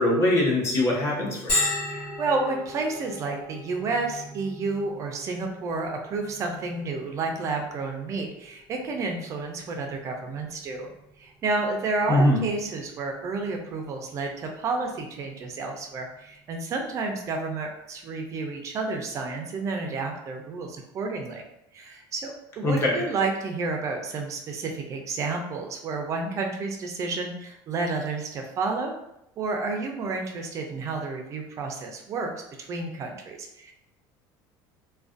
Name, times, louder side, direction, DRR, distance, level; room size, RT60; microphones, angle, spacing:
voice 1, 0.0-1.7 12.1-12.5 22.6-23.0, left 1 dB, 30° left, -3 dB, 0.7 m, -22 dB
Bell, 1.5-16.9, left 1 dB, 65° left, 1.3 m, -38 dB
voice 2, 1.9-10.9 11.2-21.4 21.7-28.9 29.4-32.3 32.6-33.7, right 3 dB, 35° right, 3 dB, 0.3 m, -30 dB
2.4 x 2.1 x 2.4 m, 0.83 s
cardioid pair, 140°, 9 cm